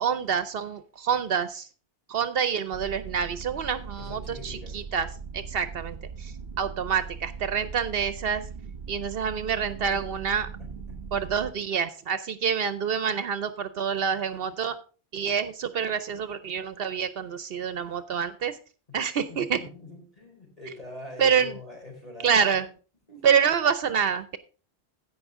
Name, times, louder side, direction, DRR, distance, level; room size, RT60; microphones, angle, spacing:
voice 1, 0.0-1.7 2.1-5.1 5.3-8.4 8.9-10.5 11.1-14.8 15.1-18.6 18.9-19.6 21.2-21.5 22.2-22.7 23.2-24.4, right 7 dB, 70° right, 13 dB, 0.8 m, -27 dB
sound 1, 2.7-11.5, right 5 dB, 50° right, 1.1 m, -40 dB
voice 2, 4.0-4.8 9.9-10.2 10.6-11.0 18.9-19.0 19.3-22.7 23.1-23.4, left 2 dB, 35° left, 0 dB, 4.3 m, -44 dB
16.0 x 5.5 x 3.6 m, 0.36 s
omnidirectional pair, 1.1 m